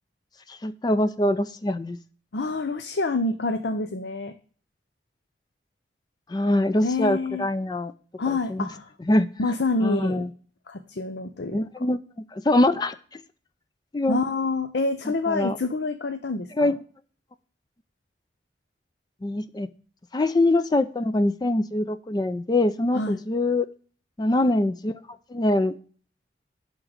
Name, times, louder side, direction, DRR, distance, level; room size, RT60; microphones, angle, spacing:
voice 1, 0.5-2.0 6.3-7.9 8.3-8.7 9.1-9.3 9.8-10.3 11.5-12.0 12.3-13.2 13.9-14.2 15.3-15.6 16.6-16.7 19.2-19.7 20.1-23.7 24.2-24.9 25.3-25.8, left 1 dB, 20° left, 12 dB, 0.4 m, -23 dB
voice 2, 2.3-4.3 6.8-7.5 8.2-8.9 9.4-10.2 10.7-11.7 14.1-16.7 22.9-23.2, left 3 dB, 70° left, 8 dB, 0.6 m, -27 dB
11.0 x 3.7 x 6.4 m, 0.43 s
head